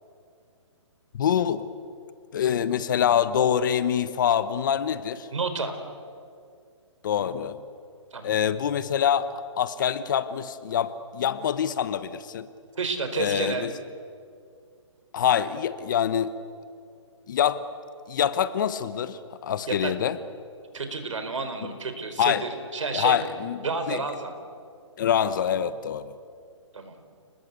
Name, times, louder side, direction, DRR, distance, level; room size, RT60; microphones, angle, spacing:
voice 1, 1.1-1.6 2.3-5.3 7.0-7.6 8.2-9.3 9.6-12.5 13.1-13.7 15.1-16.3 17.3-17.6 18.1-20.2 21.6-21.7 22.2-22.4 22.9-24.0 25.0-26.2, left 9 dB, 40° left, 13 dB, 1.2 m, -25 dB
voice 2, 5.3-5.8 8.1-8.4 12.7-13.7 19.7-19.9 20.7-23.2 23.6-24.3 26.7-27.0, right 4 dB, 80° right, 8 dB, 4.5 m, -30 dB
30.0 x 20.0 x 8.3 m, 2.3 s
hypercardioid pair, 165°, 16 cm